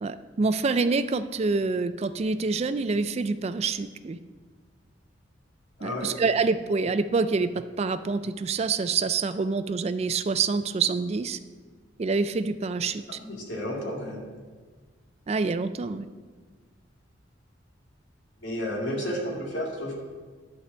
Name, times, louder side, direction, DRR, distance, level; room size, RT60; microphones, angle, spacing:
voice 1, 0.0-4.2 5.8-11.4 12.0-13.2 15.3-16.1, right 4 dB, 35° right, 12 dB, 0.3 m, -26 dB
voice 2, 5.8-6.1 13.3-14.2 18.4-19.9, equal, 80° left, -3 dB, 2.3 m, -31 dB
11.0 x 4.7 x 6.8 m, 1.5 s
head